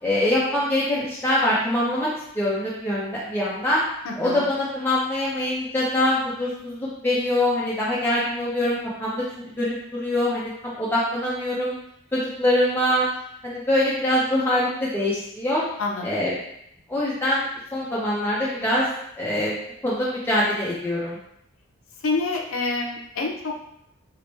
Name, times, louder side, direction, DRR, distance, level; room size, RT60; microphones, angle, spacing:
voice 1, 0.0-2.1 2.3-3.8 4.2-9.2 9.6-11.7 12.1-13.1 13.4-15.6 16.0-16.3 16.9-17.5 17.7-18.9 19.2-19.5 19.8-21.2, left 1 dB, 10° left, -8 dB, 0.5 m, -24 dB
voice 2, 4.0-4.5 15.8-16.3 22.0-23.5, left 3 dB, 75° left, 0 dB, 0.6 m, -27 dB
3.0 x 2.1 x 4.1 m, 0.75 s
head